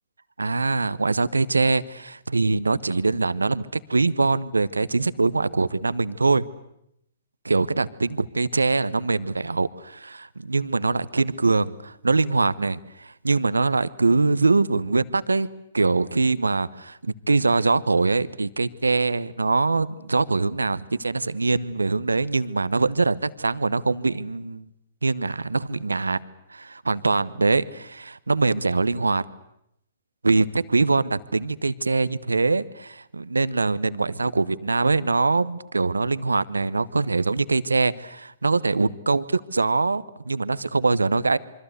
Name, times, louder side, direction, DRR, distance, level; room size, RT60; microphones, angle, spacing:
voice 1, 0.4-6.4 7.4-15.5 15.7-24.6 25.0-26.2 26.5-29.2 30.2-41.4, right 3 dB, 90° right, 17 dB, 1.0 m, -23 dB
27.0 x 24.5 x 8.1 m, 0.77 s
hypercardioid pair, 120°, 0 cm